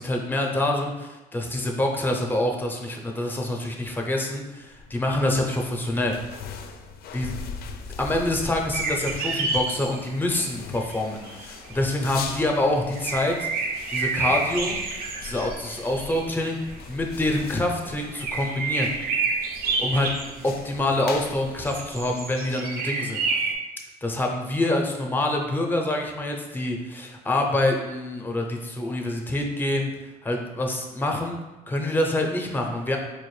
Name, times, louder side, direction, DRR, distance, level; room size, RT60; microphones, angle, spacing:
voice 1, 0.0-6.1 7.1-7.3 8.0-13.5 13.9-14.8 15.2-16.6 16.9-18.9 19.8-20.1 20.4-23.2 24.0-29.9 30.2-31.4 31.7-33.0, left 1 dB, 10° left, 1 dB, 0.6 m, -26 dB
sound 1, 4.6-22.4, left 5 dB, 65° left, 0.4 m, -41 dB
sound 2, 8.7-10.5 10.7-12.5 13.0-16.7 18.1-21.3 21.6-23.5, right 4 dB, 60° right, 0.6 m, -29 dB
4.4 x 2.5 x 3.1 m, 1.1 s
cardioid pair, 110°, 17 cm